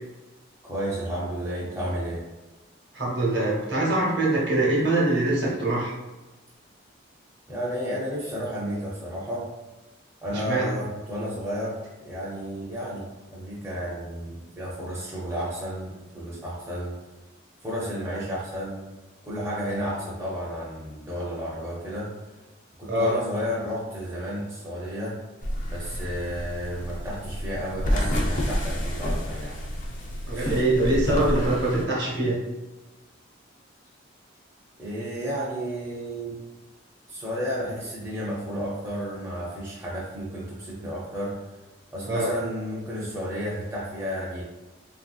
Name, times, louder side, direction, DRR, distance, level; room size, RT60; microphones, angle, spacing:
voice 1, 0.6-2.2 7.5-9.5 10.2-17.0 17.6-18.9 19.2-22.1 22.8-25.2 25.7-29.5 30.3-30.6 34.8-36.4 37.1-41.4 41.9-44.4, equal, 15° right, -7 dB, 0.5 m, -32 dB
voice 2, 2.9-5.9 10.3-10.7 22.9-23.1 30.3-32.4 42.1-42.3, right 1 dB, 55° right, -4 dB, 0.9 m, -23 dB
sound 1, 25.4-31.8, equal, 40° left, 0.4 m, -29 dB
3.1 x 2.6 x 2.3 m, 1.1 s
head